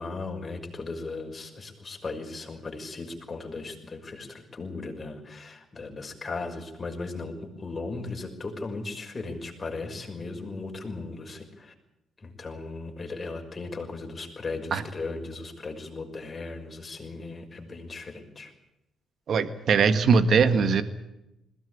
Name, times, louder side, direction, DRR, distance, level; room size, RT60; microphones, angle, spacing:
voice 1, 0.0-11.7 12.2-18.5, left 3 dB, 30° left, 2 dB, 6.0 m, -37 dB
voice 2, 19.3-20.8, right 5 dB, 60° right, 11 dB, 1.7 m, -21 dB
21.0 x 17.5 x 10.0 m, 0.90 s
cardioid pair, 90°, 0 cm